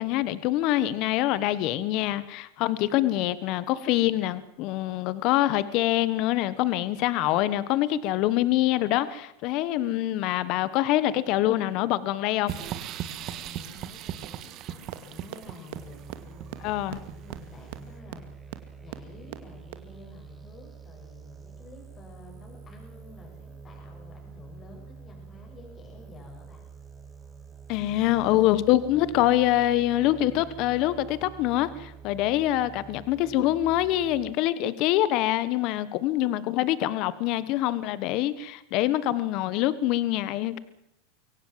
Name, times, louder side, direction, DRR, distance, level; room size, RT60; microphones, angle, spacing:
voice 1, 0.0-12.5 16.6-17.0 27.7-40.6, left 14 dB, 50° left, 16 dB, 1.3 m, -25 dB
sound 1, 12.5-17.6, right 10 dB, 45° right, 1.9 m, -38 dB
voice 2, 13.1-26.6, left 2 dB, 25° left, 2 dB, 7.3 m, -50 dB
sound 2, 14.9-15.0 15.3-15.4 15.7-15.8 16.1-16.2 16.5-16.6 16.9-17.0 17.3-17.4 17.7-17.8 18.1-18.2 18.5-18.6 18.9-19.0 19.3-19.4 19.7-19.8, right 19 dB, 70° right, 2.2 m, -36 dB
sound 3, 15.7-34.3, right 5 dB, 15° right, 2.8 m, -46 dB
24.0 x 17.0 x 7.5 m, 0.80 s
supercardioid pair, 125°, 0 cm